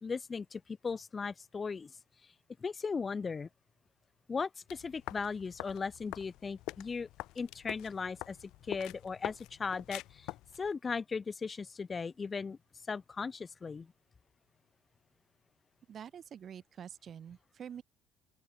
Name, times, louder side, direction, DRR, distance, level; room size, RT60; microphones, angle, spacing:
voice 1, 0.0-1.9 2.6-3.5 4.3-7.1 7.3-10.3 10.6-12.6 12.9-13.9, left 5 dB, 20° left, 1.5 m, -37 dB
sound 1, 4.7-10.7, left 18 dB, 65° left, 3.6 m, -45 dB
voice 2, 15.9-17.8, right 8 dB, 35° right, 1.0 m, -47 dB
open air
cardioid pair, 160°, 0 cm